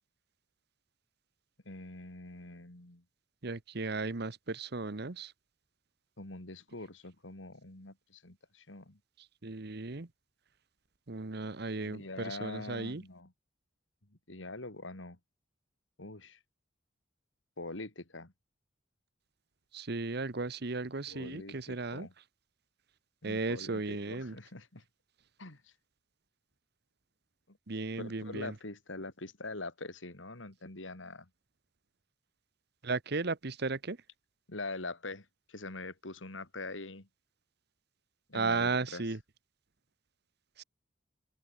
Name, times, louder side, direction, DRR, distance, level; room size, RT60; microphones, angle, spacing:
voice 1, 1.6-3.0 6.2-9.0 11.8-13.3 14.3-15.2 16.0-16.4 17.6-18.3 21.1-22.1 23.2-24.8 25.4-25.7 27.5-27.6 28.0-31.3 34.5-37.1 38.3-39.0, left 2 dB, 85° left, 3.2 m, -44 dB
voice 2, 3.4-5.3 9.4-10.1 11.1-13.0 19.7-22.1 23.2-24.3 27.7-28.5 32.8-34.0 38.3-39.2 40.6-40.7, right 3 dB, 60° right, 1.1 m, -35 dB
head